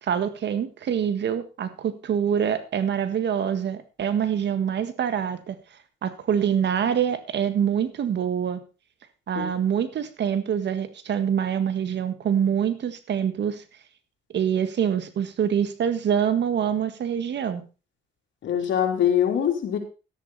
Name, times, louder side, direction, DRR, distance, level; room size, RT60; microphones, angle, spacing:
voice 1, 0.0-5.6 6.0-8.6 9.3-13.6 14.3-17.6, right 8 dB, 60° right, 11 dB, 1.7 m, -25 dB
voice 2, 18.4-19.8, left 9 dB, 70° left, 3 dB, 3.6 m, -23 dB
12.5 x 11.0 x 4.2 m, 0.33 s
cardioid pair, 90°, 20 cm